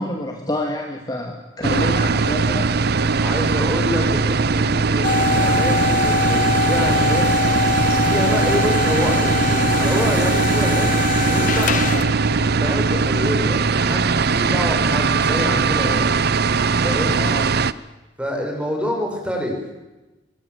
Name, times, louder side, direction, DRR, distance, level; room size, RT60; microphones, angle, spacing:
voice 1, 0.0-2.7 17.2-17.5, left 1 dB, 20° left, 2 dB, 2.4 m, -27 dB
sound 1, 1.6-17.7, right 4 dB, 60° right, 0.8 m, -20 dB
voice 2, 3.2-7.3 8.0-11.7 12.3-16.1 16.8-17.2 18.2-19.6, equal, 5° right, 2 dB, 6.4 m, -27 dB
sound 2, 5.0-12.3, left 4 dB, 45° left, 0.9 m, -23 dB
Water / Water tap faucet, 6.7-11.8, left 4 dB, 70° left, 7.4 m, -43 dB
24.0 x 22.5 x 8.0 m, 1.1 s
head